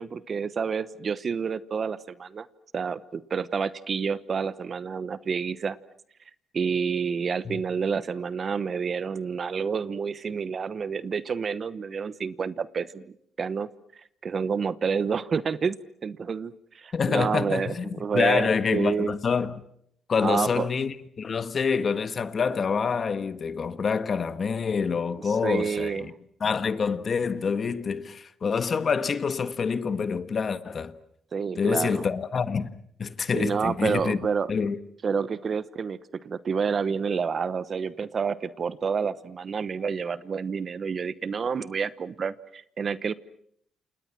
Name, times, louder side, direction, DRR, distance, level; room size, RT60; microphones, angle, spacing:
voice 1, 0.0-2.5 2.7-5.8 6.5-13.7 14.2-19.1 20.2-20.7 25.2-26.1 31.3-32.1 33.3-34.5 35.0-36.0 36.2-43.1, right 6 dB, 45° right, 1.1 m, -29 dB
voice 2, 16.9-17.8 18.1-19.6 20.1-26.1 26.4-30.9 31.6-32.7 33.0-34.2 34.5-34.8, left 5 dB, 45° left, 1.5 m, -26 dB
28.5 x 28.0 x 6.1 m
cardioid pair, 90°, 0 cm